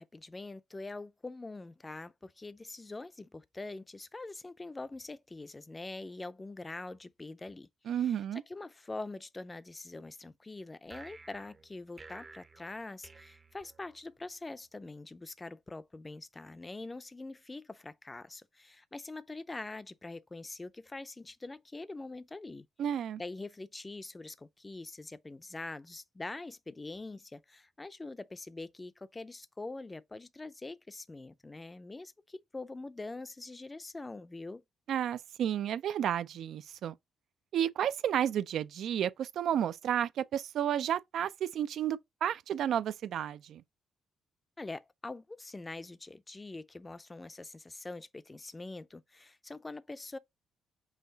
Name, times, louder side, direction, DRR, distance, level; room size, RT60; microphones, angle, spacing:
voice 1, 0.0-22.7 23.2-34.6 44.6-50.2, left 2 dB, 20° left, 0.4 m, -44 dB
voice 2, 7.9-8.4 22.8-23.2 34.9-36.9 37.5-43.6, right 10 dB, 70° right, 0.3 m, -32 dB
sound 1, 10.9-14.3, right 3 dB, 30° right, 0.6 m, -53 dB
5.6 x 2.4 x 3.9 m
cardioid pair, 90°, 0 cm